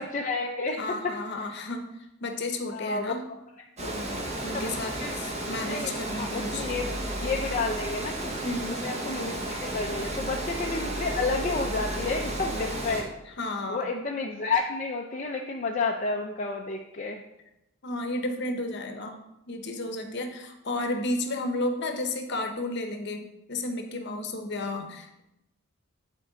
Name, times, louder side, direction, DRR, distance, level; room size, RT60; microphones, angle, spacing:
voice 1, 0.0-1.5 2.7-3.1 4.5-4.7 5.0-6.9 7.2-8.4 8.8-13.4 13.7-17.2, left 3 dB, 35° left, 1 dB, 0.5 m, -31 dB
voice 2, 0.8-1.9 2.2-3.2 3.8-6.9 8.4-8.8 13.4-13.9 17.8-19.2 19.5-25.2, left 2 dB, 50° left, 5 dB, 0.9 m, -33 dB
Water, 3.8-13.0, right 1 dB, 30° right, 1.0 m, -33 dB
8.7 x 4.4 x 3.9 m, 0.88 s
head